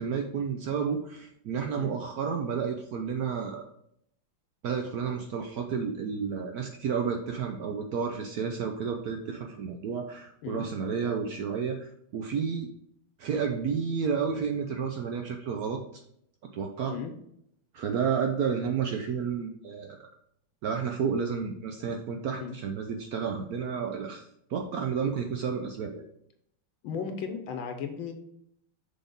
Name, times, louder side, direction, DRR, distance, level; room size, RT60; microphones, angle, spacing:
voice 1, 0.0-3.7 4.6-12.7 13.2-15.8 16.5-17.0 17.7-20.0 20.6-26.1, right 6 dB, 80° right, 3 dB, 0.8 m, -31 dB
voice 2, 26.8-28.1, left 6 dB, 75° left, 6 dB, 1.5 m, -35 dB
6.6 x 4.2 x 3.8 m, 0.71 s
omnidirectional pair, 2.2 m